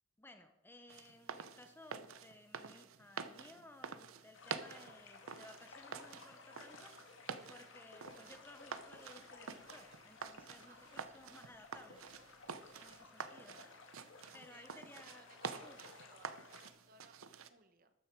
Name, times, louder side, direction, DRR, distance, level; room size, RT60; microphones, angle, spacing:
voice 1, 0.2-12.1 12.8-13.6 14.3-15.4 15.6-15.8, left 2 dB, 10° left, 7 dB, 0.7 m, -59 dB
sound 1, 0.9-17.5, right 6 dB, 85° right, 0.7 m, -48 dB
sound 2, 4.3-16.7, left 3 dB, 65° left, 1.8 m, -58 dB
Walk footsteps, 7.9-13.2, right 1 dB, 20° right, 2.4 m, -72 dB
voice 2, 12.8-13.5 14.0-17.9, right 4 dB, 45° right, 9 dB, 1.0 m, -64 dB
13.0 x 9.3 x 4.5 m, 0.92 s
head